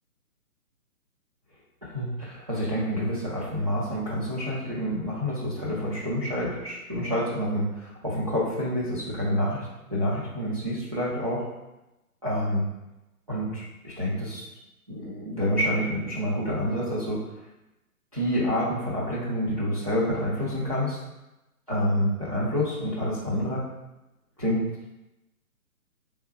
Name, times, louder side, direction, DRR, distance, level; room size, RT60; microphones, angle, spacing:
voice 1, 1.8-11.4 12.2-12.6 13.3-14.5 14.9-17.2 18.1-21.0 21.7-23.6 24.4-24.6, equal, 25° right, -9 dB, 0.5 m, -28 dB
3.5 x 3.1 x 4.2 m, 0.97 s
figure-of-eight pair, 135°, 45 cm